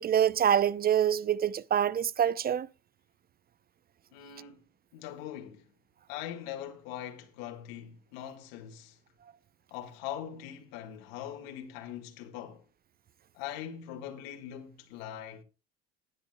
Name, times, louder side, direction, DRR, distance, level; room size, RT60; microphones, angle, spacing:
voice 1, 0.0-2.7, right 9 dB, 30° right, 0.6 m, -26 dB
voice 2, 4.1-4.6 4.9-5.7 6.1-9.0 9.7-12.6 13.3-15.4, left 10 dB, 80° left, 1.9 m, -42 dB
19.5 x 10.0 x 2.3 m
supercardioid pair, 80°, 29 cm